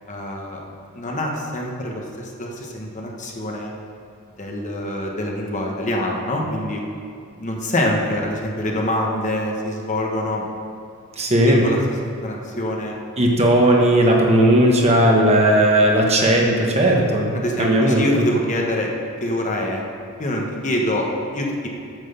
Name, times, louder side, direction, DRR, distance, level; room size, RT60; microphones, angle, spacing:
voice 1, 0.1-0.6 0.9-3.7 4.4-6.8 7.4-10.4 11.4-11.8 12.0-13.0 17.3-18.9 19.2-19.8 20.2-21.7, left 1 dB, 35° left, -1 dB, 1.2 m, -25 dB
voice 2, 11.2-11.6 13.2-18.2, right 1 dB, 30° right, -1 dB, 1.3 m, -16 dB
9.2 x 6.2 x 6.8 m, 2.4 s
head